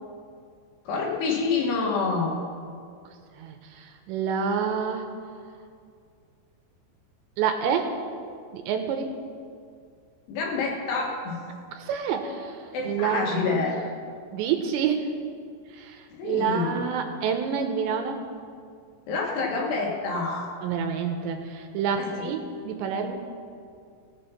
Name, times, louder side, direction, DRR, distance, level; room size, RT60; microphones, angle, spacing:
voice 1, 0.9-2.4 10.3-11.4 12.7-13.8 16.2-16.8 19.1-20.5 22.0-22.3, left 4 dB, 70° left, -1 dB, 3.3 m, -27 dB
voice 2, 3.4-5.1 7.4-7.9 8.5-9.1 11.8-12.6 12.8-13.6 14.3-15.1 15.7-18.2 20.6-23.1, right 7 dB, 80° right, 5 dB, 2.9 m, -28 dB
18.5 x 7.0 x 5.7 m, 2.3 s
omnidirectional pair, 5.4 m